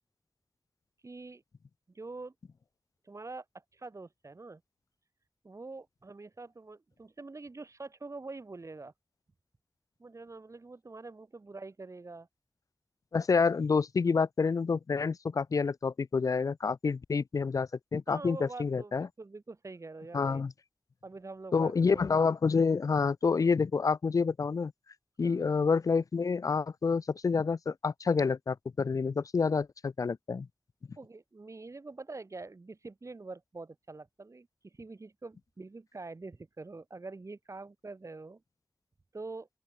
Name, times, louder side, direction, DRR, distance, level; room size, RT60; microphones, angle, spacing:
voice 1, 1.0-1.4 1.9-2.3 3.0-3.5 3.7-4.6 5.4-8.9 10.0-12.3 18.1-20.4 21.0-22.0 25.2-25.5 31.0-38.4 39.1-39.5, right 3 dB, 60° right, 1.8 m, -45 dB
voice 2, 13.1-19.1 20.1-20.5 21.5-24.7 25.2-30.5, left 5 dB, 70° left, 0.3 m, -28 dB
open air
wide cardioid pair, 65°, 6 cm